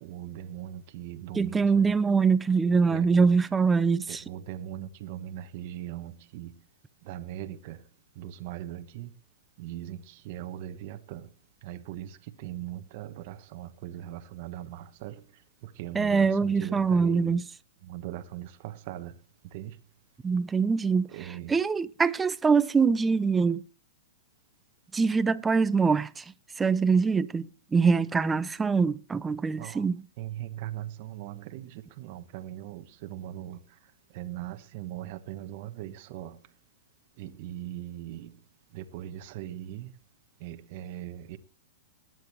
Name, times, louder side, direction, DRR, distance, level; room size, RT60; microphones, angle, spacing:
voice 1, 0.0-1.6 2.9-3.0 4.3-6.5 7.1-7.8 8.2-9.1 9.6-11.2 11.6-15.1 15.8-17.3 17.9-19.1 19.5-19.7 21.1-21.5 29.6-29.8 30.2-31.7 32.0-33.6 34.1-36.3 37.2-38.3 38.7-39.9 40.4-41.4, right 12 dB, 45° right, 1.2 m, -39 dB
voice 2, 1.3-4.2 15.9-17.5 20.2-23.6 24.9-26.2 26.6-30.1, right 5 dB, 10° right, 0.6 m, -24 dB
20.5 x 9.2 x 3.2 m
hypercardioid pair, 145°, 0 cm